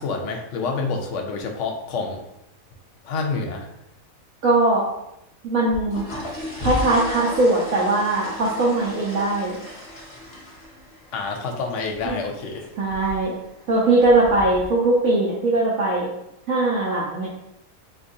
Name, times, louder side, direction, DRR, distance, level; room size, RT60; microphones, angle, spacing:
voice 1, 0.0-2.2 3.0-3.7 11.1-12.7, left 4 dB, 70° left, 3 dB, 0.8 m, -28 dB
voice 2, 4.4-4.9 5.4-6.1 6.6-9.6 12.0-12.2 12.8-13.3 13.7-16.1 16.5-17.3, right 2 dB, 75° right, -6 dB, 1.1 m, -20 dB
sound 1, 5.7-14.7, equal, 25° left, 0.7 m, -36 dB
3.9 x 2.6 x 2.6 m, 0.84 s
omnidirectional pair, 1.5 m